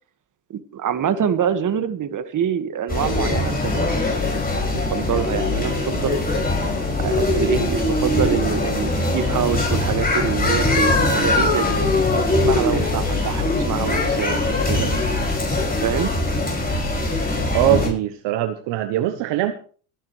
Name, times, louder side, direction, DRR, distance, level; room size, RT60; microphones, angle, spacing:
voice 1, 0.5-3.8 4.7-6.2 7.0-11.7 12.4-14.9 15.8-16.1, right 8 dB, 40° right, 10 dB, 1.7 m, -25 dB
sound 1, 2.9-17.9, left 2 dB, 20° left, 5.6 m, -21 dB
voice 2, 17.5-19.5, right 13 dB, 70° right, 9 dB, 1.1 m, -21 dB
23.0 x 10.0 x 3.2 m, 0.42 s
supercardioid pair, 85°, 45 cm